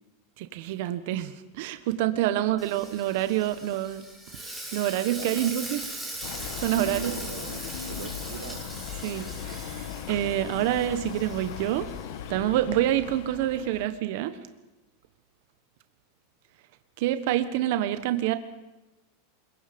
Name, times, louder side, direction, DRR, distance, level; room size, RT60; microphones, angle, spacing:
voice 1, 0.4-4.0 4.3-6.3 6.6-7.1 7.6-7.8 9.0-11.9 12.3-14.4 17.0-18.4, right 13 dB, 60° right, 10 dB, 1.3 m, -27 dB
Frying (food), 2.6-12.3, right 1 dB, ahead, 7.1 m, -40 dB
voice 2, 5.1-5.5 6.8-8.6, right 9 dB, 85° right, 11 dB, 1.4 m, -40 dB
sound 1, 6.2-13.9, left 9 dB, 65° left, 1.7 m, -38 dB
26.0 x 22.5 x 5.4 m, 1.1 s
supercardioid pair, 150°, 0 cm